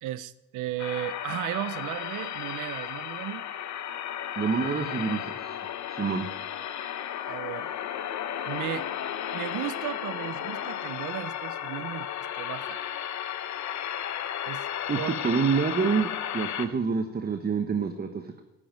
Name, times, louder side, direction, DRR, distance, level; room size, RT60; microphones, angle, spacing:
voice 1, 0.0-3.5 7.3-7.7 8.5-8.9 9.3-12.1 12.4-12.8 14.5-14.7 15.0-15.1, right 13 dB, 85° right, 18 dB, 0.7 m, -35 dB
sound 1, 0.8-16.7, left 10 dB, 65° left, 1.0 m, -34 dB
voice 2, 4.4-5.6 5.9-6.3 14.9-18.4, right 5 dB, 30° right, 7 dB, 1.0 m, -27 dB
13.0 x 8.7 x 8.9 m, 1.0 s
cardioid pair, 90°, 30 cm